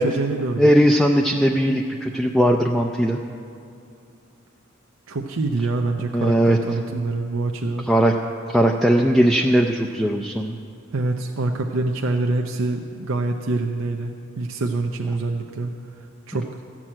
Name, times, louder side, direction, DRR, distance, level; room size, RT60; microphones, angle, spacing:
voice 1, 0.0-0.7 5.1-7.9 10.9-15.8 16.3-16.5, right 2 dB, 70° right, 2 dB, 0.6 m, -25 dB
voice 2, 0.6-3.2 6.1-6.6 6.9-7.0 7.9-8.1 8.5-10.6, equal, ahead, 1 dB, 0.4 m, -18 dB
14.0 x 6.1 x 8.7 m, 2.5 s
head